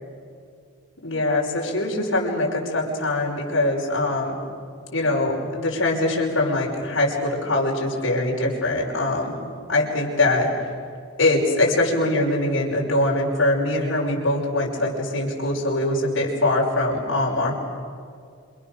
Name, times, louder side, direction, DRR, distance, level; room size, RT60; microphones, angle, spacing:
voice 1, 1.0-4.4 4.9-9.4 9.7-10.5 11.2-17.5, left 2 dB, 75° left, -3 dB, 5.9 m, -22 dB
28.0 x 27.0 x 6.9 m, 2.2 s
head